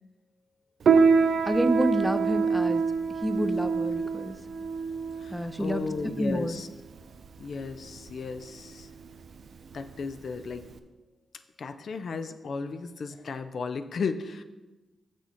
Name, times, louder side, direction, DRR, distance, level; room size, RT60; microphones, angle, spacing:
Piano, 0.8-10.8, right 5 dB, 70° right, 0.4 m, -26 dB
voice 1, 1.5-2.8 3.2-4.4 5.3-5.8 6.2-6.6, equal, 5° right, 10 dB, 0.6 m, -28 dB
voice 2, 5.2-6.7 7.4-8.9 9.7-10.6 11.6-14.4, left 5 dB, 65° left, 9 dB, 0.5 m, -34 dB
6.9 x 6.3 x 4.3 m, 1.1 s
supercardioid pair, 50°, 0 cm